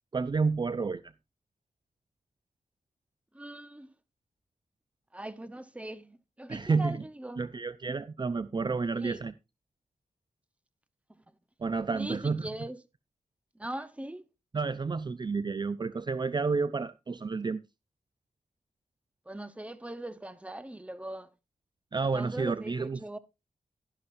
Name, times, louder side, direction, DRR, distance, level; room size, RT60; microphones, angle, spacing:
voice 1, 0.1-1.0 6.5-7.0 7.4-9.3 11.6-12.5 14.5-17.6 21.9-23.2, right 4 dB, 35° right, 0.5 m, -30 dB
voice 2, 3.3-3.9 5.1-7.5 8.9-9.2 11.1-11.2 11.9-12.8 13.5-14.3 19.3-21.3 22.0-23.2, right 1 dB, 10° right, 0.8 m, -40 dB
12.0 x 11.0 x 2.6 m
wide cardioid pair, 80°, 13 cm